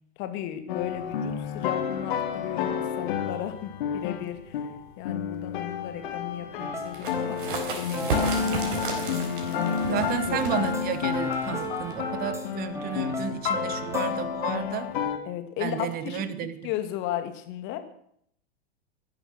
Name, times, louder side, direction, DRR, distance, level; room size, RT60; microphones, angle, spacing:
voice 1, 0.2-4.7 5.0-7.4 7.7-10.5 15.2-17.8, left 11 dB, 40° left, 9 dB, 2.3 m, -35 dB
sound 1, 0.7-15.2, left 7 dB, 55° left, 2.3 m, -30 dB
sound 2, 6.6-9.3 9.5-12.5 12.7-14.1, right 1 dB, 10° right, 2.6 m, -36 dB
sound 3, 6.8-12.2, right 4 dB, 55° right, 4.3 m, -34 dB
voice 2, 9.8-14.9 15.6-16.7, right 9 dB, 30° right, 14 dB, 1.4 m, -32 dB
14.5 x 11.0 x 6.6 m, 0.68 s
figure-of-eight pair, 100°, 31 cm